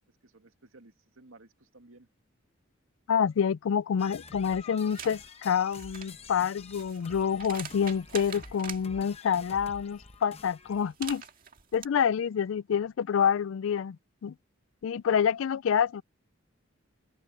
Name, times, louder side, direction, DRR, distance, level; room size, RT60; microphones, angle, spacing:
voice 1, 0.1-2.1, right 2 dB, 80° right, 2.2 m, -56 dB
voice 2, 3.1-11.2 11.7-14.0 14.2-14.3 14.8-16.0, left 7 dB, 75° left, 0.4 m, -27 dB
sound 1, 4.0-10.9, left 4 dB, 30° left, 1.0 m, -49 dB
sound 2, 4.9-5.2 5.6-8.8 10.7-11.9, right 8 dB, 45° right, 2.1 m, -43 dB
open air
head